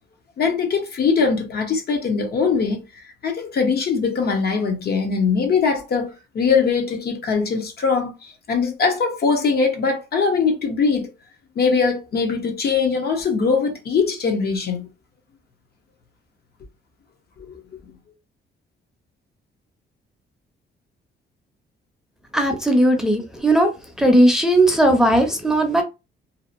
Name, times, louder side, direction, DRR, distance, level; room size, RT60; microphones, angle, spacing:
voice 1, 0.4-2.8 3.2-11.1 11.6-14.9 17.5-17.8, left 5 dB, 50° left, 0.8 m, -21 dB
voice 2, 22.3-23.7 24.0-25.8, right 1 dB, ahead, 0.6 m, -17 dB
2.7 x 2.0 x 2.5 m
cardioid pair, 90°, 20 cm